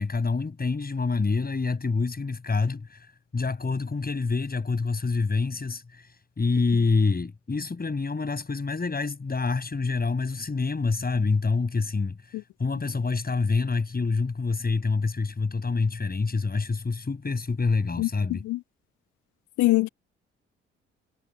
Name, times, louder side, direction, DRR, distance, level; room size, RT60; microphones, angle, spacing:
voice 1, 0.0-3.0 3.3-6.0 6.4-12.2 12.6-18.4, left 4 dB, 25° left, 6.7 m, -26 dB
voice 2, 18.0-18.6 19.6-19.9, left 19 dB, 60° left, 1.2 m, -24 dB
figure-of-eight pair, 40°, 33 cm